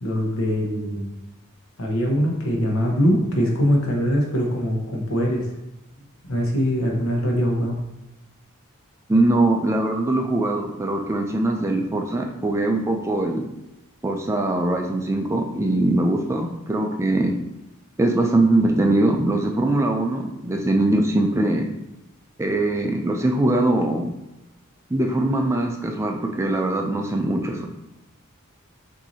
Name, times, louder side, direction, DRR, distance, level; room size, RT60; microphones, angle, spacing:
voice 1, 0.0-1.1 1.8-5.4 6.3-7.7, equal, 70° left, -1 dB, 1.1 m, -22 dB
voice 2, 9.1-13.4 14.0-17.3 18.0-21.7 22.4-24.1 24.9-27.7, right 2 dB, 15° right, 2 dB, 0.4 m, -22 dB
5.9 x 2.7 x 2.7 m, 0.94 s
head